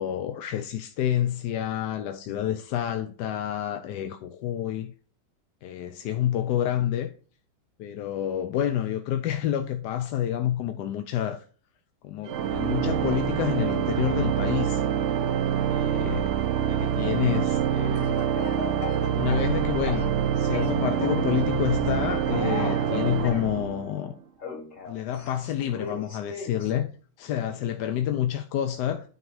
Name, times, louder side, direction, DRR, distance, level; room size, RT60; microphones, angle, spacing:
voice 1, 0.0-4.9 5.6-7.1 7.8-11.4 12.0-14.8 15.7-18.2 19.1-24.2 24.9-26.9 27.2-29.1, left 11 dB, 75° left, 1.2 m, -28 dB
Organ, 12.3-24.1, right 9 dB, 80° right, 0.6 m, -26 dB
Speech / Cough, 18.0-20.2 20.5-21.3 22.2-23.5 24.4-26.7, left 4 dB, 50° left, 2.0 m, -37 dB
9.7 x 4.0 x 4.8 m
omnidirectional pair, 1.9 m